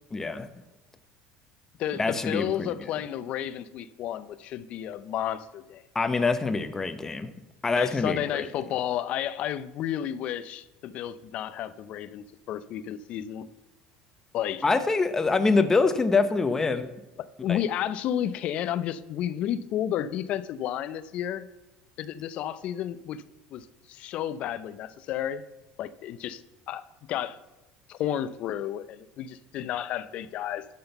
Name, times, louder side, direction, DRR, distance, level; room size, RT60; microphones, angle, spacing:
voice 1, 0.1-0.5 2.0-2.8 5.9-7.3 7.6-8.5 14.6-16.9 17.5-17.6, left 4 dB, 20° left, 0.8 m, -25 dB
voice 2, 1.8-5.8 7.7-13.5 14.3-14.6 17.4-21.5 22.0-23.2 23.5-25.4 25.8-26.8 27.1-27.4 27.9-30.7, left 11 dB, 55° left, 0.5 m, -32 dB
11.5 x 3.9 x 6.7 m
supercardioid pair, 110°, 2 cm